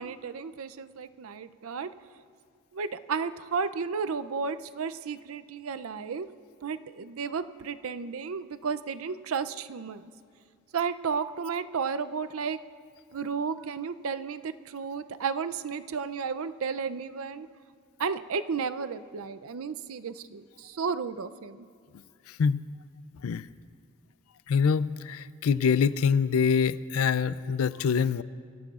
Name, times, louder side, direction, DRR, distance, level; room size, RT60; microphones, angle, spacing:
voice 1, 0.0-1.9 2.7-6.3 6.6-10.0 10.7-12.6 13.1-17.5 18.0-21.7, right 5 dB, 80° right, 12 dB, 0.5 m, -33 dB
voice 2, 24.5-28.2, left 6 dB, 85° left, 16 dB, 0.4 m, -25 dB
24.0 x 14.0 x 2.4 m, 2.1 s
head